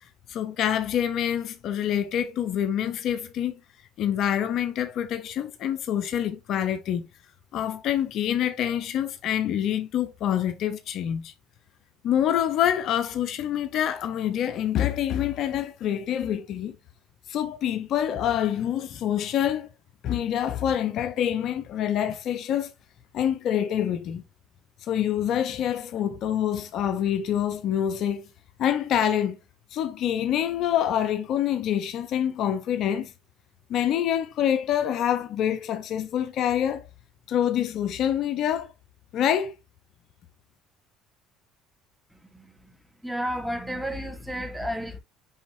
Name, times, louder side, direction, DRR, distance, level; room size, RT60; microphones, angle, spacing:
voice 1, 0.3-3.6 4.0-7.1 7.5-11.3 12.0-16.8 17.3-19.7 20.0-22.7 23.1-24.2 24.8-28.3 28.6-29.4 29.7-33.1 33.7-36.9 37.3-38.7 39.1-39.6, left 10 dB, 60° left, 0.9 m, -26 dB
voice 2, 42.1-42.8 43.0-45.0, equal, 5° right, 2.4 m, -32 dB
10.0 x 4.2 x 2.7 m
supercardioid pair, 90°, 0 cm